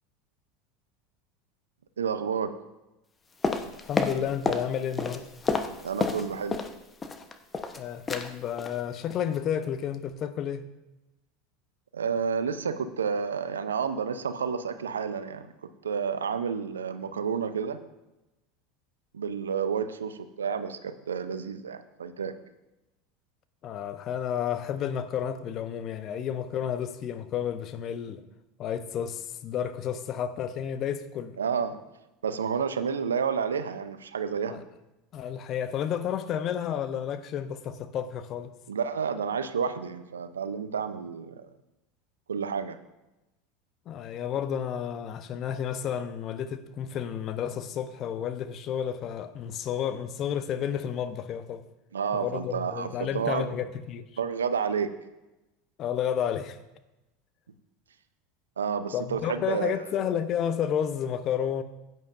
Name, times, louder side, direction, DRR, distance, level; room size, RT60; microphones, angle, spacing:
voice 1, 2.0-2.5 5.8-6.6 11.9-17.8 19.1-22.3 31.4-31.8 32.2-34.6 38.7-41.3 42.3-42.8 51.9-53.5 54.2-54.9 58.6-59.9, right 6 dB, 85° right, 0.6 m, -30 dB
sound 1, 3.4-4.7 4.9-6.7 7.0-7.8 8.1-8.3 8.6-8.8 9.1-9.4 9.6-9.7, left 4 dB, 25° left, 1.0 m, -29 dB
voice 2, 3.9-5.3 7.8-10.7 23.6-28.2 28.6-31.4 34.5-34.6 35.1-38.5 43.9-51.6 52.1-54.0 55.8-56.6 58.9-61.6, left 9 dB, 45° left, 0.8 m, -31 dB
15.5 x 9.3 x 2.6 m
hypercardioid pair, 80°, 0 cm